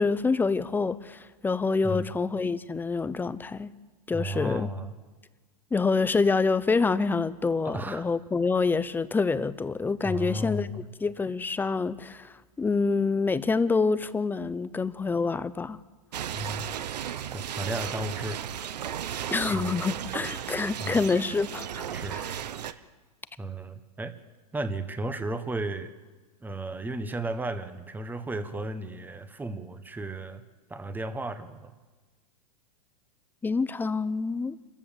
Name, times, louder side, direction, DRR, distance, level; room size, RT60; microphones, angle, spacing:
voice 1, 0.0-3.7 4.1-4.7 5.7-15.8 19.3-21.9 22.1-22.3 33.4-34.6, left 4 dB, 10° left, 0.7 m, -27 dB
voice 2, 4.1-4.9 7.6-8.1 10.0-10.8 16.3-16.8 17.3-18.4 19.5-19.8 20.8-21.0 21.9-22.2 22.7-22.8 23.4-24.1 24.5-25.9 26.4-30.4 30.7-31.7, right 1 dB, 10° right, 1.3 m, -34 dB
sound 1, 16.1-22.7, right 10 dB, 80° right, 1.0 m, -35 dB
26.5 x 14.5 x 7.4 m
hypercardioid pair, 125°, 21 cm